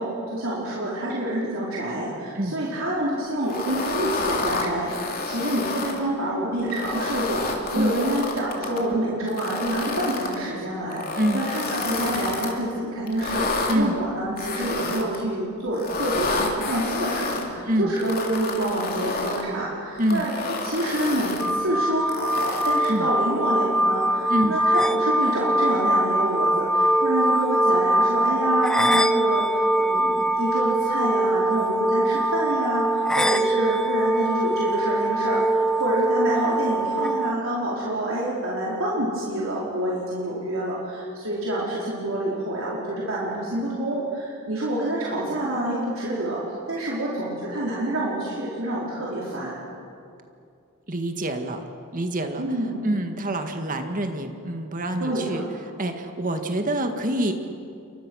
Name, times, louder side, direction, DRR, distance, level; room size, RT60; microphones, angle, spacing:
voice 1, 0.0-46.4 46.7-49.6 52.4-52.9 55.0-55.4, right 1 dB, 70° right, -6 dB, 4.6 m, -27 dB
sound 1, 3.4-6.0 6.6-8.8 9.3-10.4 10.9-12.5 13.1-13.8 14.4-15.2 15.7-17.4 18.0-19.5 20.0-21.5 22.1-23.0, left 3 dB, 45° left, 3.2 m, -29 dB
voice 2, 11.1-11.4 13.7-14.0 17.6-17.9 20.0-20.3 22.9-23.1 24.3-24.6 50.9-51.6 51.9-52.5 52.8-55.4 55.8-57.3, right 1 dB, 40° right, 5 dB, 1.8 m, -26 dB
sound 2, 21.4-37.3, right 1 dB, 5° left, 0.7 m, -22 dB
29.5 x 24.0 x 6.4 m, 2.5 s
head